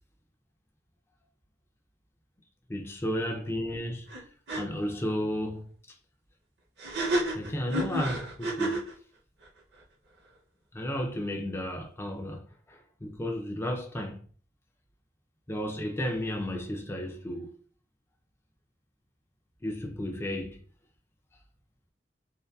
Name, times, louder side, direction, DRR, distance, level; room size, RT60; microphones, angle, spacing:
voice 1, 2.7-4.1 4.6-5.7 7.3-8.8 10.7-14.2 15.5-17.5 19.6-20.6, equal, 15° left, 0.4 m, -33 dB
sound 1, 4.1-4.2 4.5-4.6 6.8-8.9, right 1 dB, 60° right, 0.6 m, -30 dB
2.6 x 2.2 x 2.2 m
head